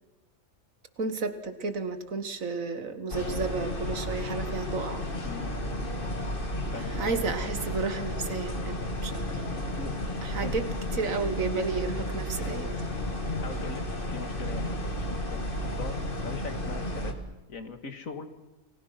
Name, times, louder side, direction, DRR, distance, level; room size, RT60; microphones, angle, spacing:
voice 1, 1.0-5.0 7.0-8.7 9.0-9.4 10.2-10.6 10.9-12.8, right 4 dB, 70° right, 9 dB, 2.1 m, -32 dB
sound 1, 3.1-17.1, left 1 dB, 40° left, 2.4 m, -32 dB
voice 2, 5.2-5.6 6.7-6.9 9.8-10.0 10.4-10.6 12.3-12.5 13.4-16.0 16.2-17.1 17.5-18.3, left 4 dB, 70° left, 8 dB, 2.3 m, -41 dB
29.5 x 21.0 x 5.9 m, 1.1 s
omnidirectional pair, 1.5 m